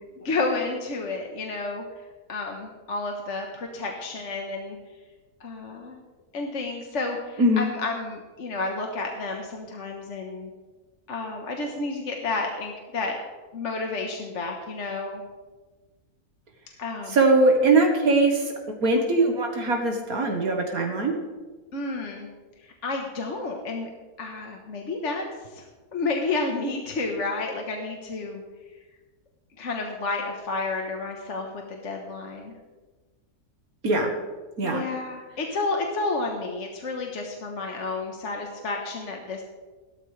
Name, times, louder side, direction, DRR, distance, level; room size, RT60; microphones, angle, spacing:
voice 1, 0.2-1.8 2.3-4.8 5.4-6.0 6.3-10.5 11.1-13.2 13.5-15.2 16.8-17.2 21.7-22.3 22.6-23.9 24.2-25.2 25.5-25.6 25.9-28.4 29.6-32.5 34.6-39.4, left 3 dB, 50° left, 2 dB, 1.4 m, -31 dB
voice 2, 17.1-18.4 18.8-21.1 33.8-34.1 34.6-34.8, right 2 dB, 70° right, 2 dB, 1.8 m, -21 dB
16.5 x 12.5 x 3.3 m, 1.3 s
omnidirectional pair, 1.6 m